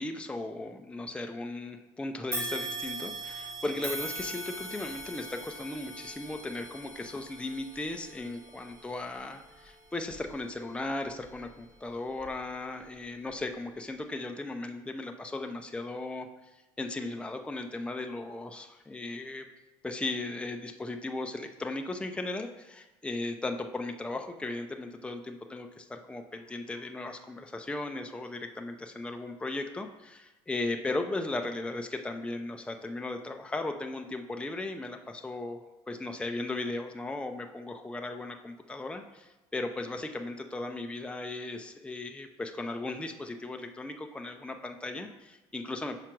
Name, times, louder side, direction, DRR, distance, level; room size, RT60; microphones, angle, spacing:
voice 1, 0.0-16.3 16.8-19.4 19.8-46.0, left 2 dB, 10° left, 4 dB, 0.6 m, -37 dB
sound 1, 2.3-11.6 12.1-12.3 13.3-13.4, right 2 dB, 25° right, 2.2 m, -41 dB
5.8 x 4.9 x 4.6 m, 1.1 s
cardioid pair, 95°, 12 cm